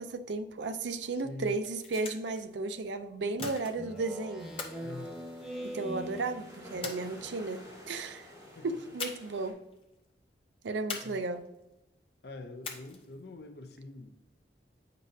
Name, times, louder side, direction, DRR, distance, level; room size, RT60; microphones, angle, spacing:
voice 1, 0.0-4.5 5.6-8.3 8.6-9.6 10.6-11.5, right 3 dB, 90° right, 0.5 m, -34 dB
voice 2, 1.1-1.6 4.8-5.2 8.5-8.8 11.0-11.2 12.2-14.2, left 2 dB, 65° left, 0.6 m, -45 dB
sound 1, 1.5-2.4 3.4-4.0 4.6-5.8 6.8-7.6 9.0-9.5 9.7-9.8 10.9-11.6 12.6-13.2, left 4 dB, 30° left, 0.8 m, -42 dB
Speech synthesizer, 3.8-6.8, equal, ahead, 1.2 m, -42 dB
sound 2, 4.4-9.5, equal, 20° right, 1.7 m, -52 dB
8.1 x 5.3 x 2.7 m
head